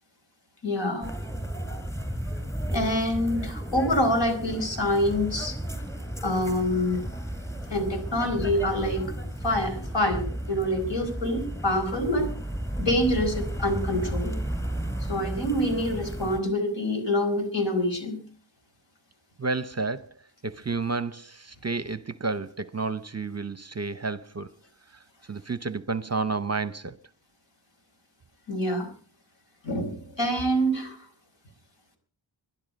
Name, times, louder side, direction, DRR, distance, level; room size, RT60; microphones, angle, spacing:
voice 1, 0.6-1.1 2.7-5.6 6.2-7.0 7.7-9.2 9.4-12.3 12.8-14.4 15.1-18.2 28.5-28.9 29.6-31.0, left 1 dB, 65° left, 4.7 m, -26 dB
sound 1, 1.0-16.4, right 1 dB, 5° left, 3.3 m, -33 dB
voice 2, 19.4-20.1 20.4-24.5 25.3-27.0, right 3 dB, 35° right, 0.7 m, -31 dB
22.0 x 11.5 x 5.2 m
wide cardioid pair, 95°, 47 cm